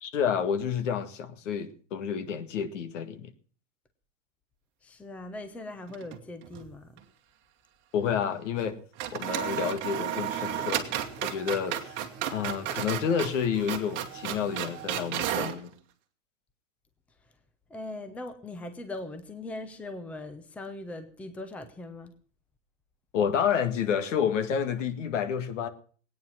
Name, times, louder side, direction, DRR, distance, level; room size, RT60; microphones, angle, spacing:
voice 1, 0.0-3.3 7.9-8.8 9.1-12.0 12.3-15.7 23.1-25.7, left 7 dB, 75° left, 2.0 m, -29 dB
voice 2, 4.8-7.0 17.7-22.2, left 2 dB, 5° left, 0.7 m, -40 dB
sound 1, 5.9-6.7 7.0-7.1 8.6-8.7 9.0-15.6, right 11 dB, 30° right, 1.6 m, -33 dB
20.0 x 9.3 x 5.8 m
supercardioid pair, 165°, 37 cm